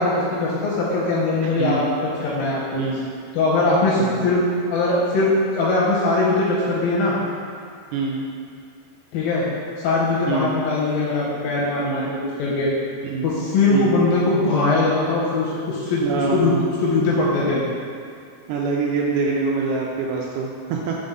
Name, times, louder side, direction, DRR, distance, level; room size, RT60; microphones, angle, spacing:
voice 1, 0.0-2.8 3.3-4.4 4.7-7.2 9.1-9.5 9.8-12.7 13.2-17.6, left 2 dB, 90° left, -6 dB, 2.7 m, -21 dB
voice 2, 1.6-1.9 2.7-3.1 4.0-4.3 7.9-8.3 10.3-10.6 11.9-12.1 13.1-13.3 13.7-14.0 16.0-16.6 18.5-21.0, right 4 dB, 80° right, -2 dB, 2.1 m, -25 dB
6.0 x 3.9 x 5.2 m, 2.4 s
omnidirectional pair, 4.0 m